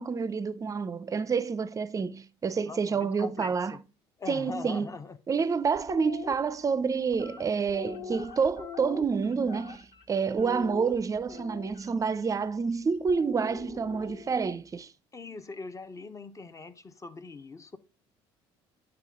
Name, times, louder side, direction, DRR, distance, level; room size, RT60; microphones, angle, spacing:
voice 1, 0.0-3.8 4.3-4.9 5.3-14.9, right 5 dB, 25° right, 0.5 m, -28 dB
voice 2, 2.6-3.8 4.2-5.2 15.1-17.8, left 3 dB, 25° left, 0.7 m, -42 dB
sound 1, 5.7-6.3 7.1-10.0 10.4-11.9 13.1-14.4, left 5 dB, 40° left, 1.4 m, -42 dB
9.0 x 3.4 x 3.6 m
hypercardioid pair, 70°, 12 cm